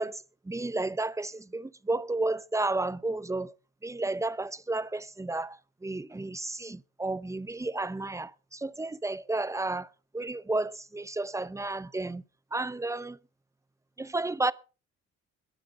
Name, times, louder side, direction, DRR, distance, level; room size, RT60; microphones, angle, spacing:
voice 1, 0.0-3.5 3.8-12.2 12.5-13.2 14.0-14.5, right 2 dB, 10° right, 0.6 m, -32 dB
21.0 x 7.8 x 4.7 m
cardioid pair, 90°, 30 cm